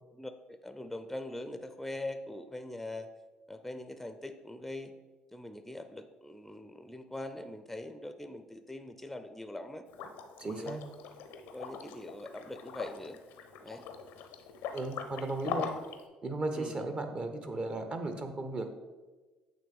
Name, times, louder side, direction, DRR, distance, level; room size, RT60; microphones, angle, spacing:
voice 1, 0.1-3.1 3.5-4.9 5.3-9.8 10.4-10.8 11.5-13.2 13.6-13.8 15.6-15.7 16.5-16.9, left 1 dB, 5° left, 9 dB, 0.4 m, -42 dB
Liquid, 9.9-16.0, left 6 dB, 75° left, 0.5 m, -42 dB
voice 2, 10.4-10.8 14.7-15.7 16.2-18.7, right 2 dB, 35° right, 7 dB, 0.7 m, -35 dB
8.5 x 3.1 x 3.5 m, 1.3 s
hypercardioid pair, 60°, 3 cm